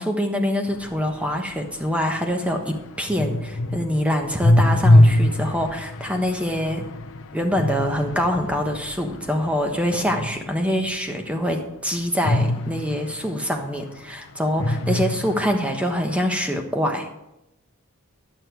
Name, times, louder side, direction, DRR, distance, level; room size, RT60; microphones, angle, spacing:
voice 1, 0.0-6.9 7.3-17.1, equal, 5° right, 3 dB, 1.2 m, -25 dB
sound 1, 0.7-10.9 12.2-14.1 14.5-16.2, left 1 dB, 65° left, 0.9 m, -23 dB
11.0 x 8.8 x 4.6 m, 0.89 s
head